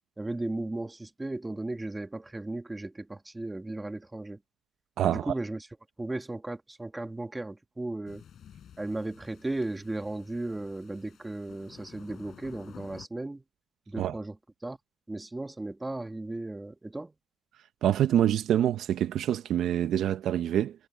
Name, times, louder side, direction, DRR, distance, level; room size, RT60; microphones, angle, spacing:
voice 1, 0.2-4.4 5.0-5.7 6.0-8.2 8.8-13.4 13.9-14.4 14.6-14.8 15.1-17.1, right 2 dB, 10° right, 1.6 m, -36 dB
voice 2, 5.0-5.3 14.0-14.1 17.8-20.7, right 11 dB, 65° right, 0.6 m, -26 dB
sound 1, 8.1-13.1, left 9 dB, 50° left, 6.3 m, -52 dB
cardioid pair, 150°, 0 cm